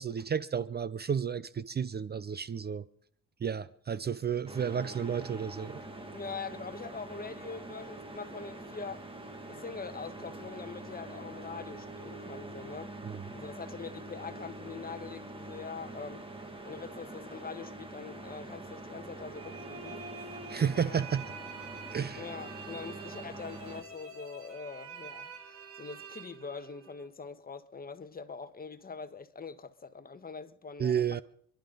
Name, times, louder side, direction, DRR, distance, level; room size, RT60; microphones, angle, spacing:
voice 1, 0.0-2.8 3.4-5.8 13.1-13.2 20.5-21.2 21.9-22.3 30.8-31.2, right 7 dB, 35° right, 0.6 m, -32 dB
sound 1, 4.5-23.8, right 2 dB, 20° right, 2.3 m, -45 dB
voice 2, 6.1-9.1 9.5-12.9 13.3-16.2 16.6-20.1 20.7-21.0 22.2-31.2, left 5 dB, 30° left, 1.3 m, -43 dB
sound 2, 19.3-27.1, right 4 dB, 50° right, 2.3 m, -47 dB
29.0 x 11.5 x 4.0 m
cardioid pair, 90°, 30 cm